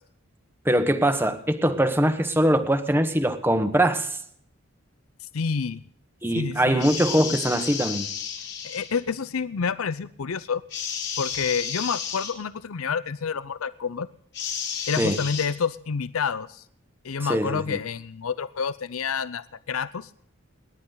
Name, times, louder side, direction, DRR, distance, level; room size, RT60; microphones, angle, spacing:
voice 1, 0.6-4.2 6.2-8.1 15.0-15.2 17.3-17.8, right 1 dB, 10° right, 7 dB, 1.1 m, -22 dB
voice 2, 5.2-5.8 6.3-6.8 8.6-10.6 11.2-14.1 14.9-16.6 17.0-20.1, left 6 dB, 90° left, 16 dB, 0.6 m, -28 dB
sound 1, 6.8-9.0 10.7-12.3 14.3-15.5, left 7 dB, 55° left, 4.2 m, -32 dB
28.5 x 11.0 x 4.0 m, 0.66 s
head